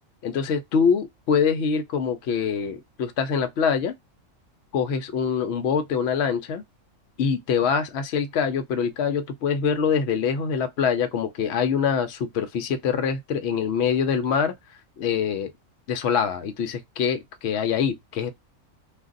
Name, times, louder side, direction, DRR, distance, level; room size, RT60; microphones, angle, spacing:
voice 1, 0.2-4.0 4.7-6.6 7.2-14.5 15.0-15.5 15.9-18.3, left 6 dB, 60° left, 0.8 m, -24 dB
2.5 x 2.5 x 3.8 m
omnidirectional pair, 1.4 m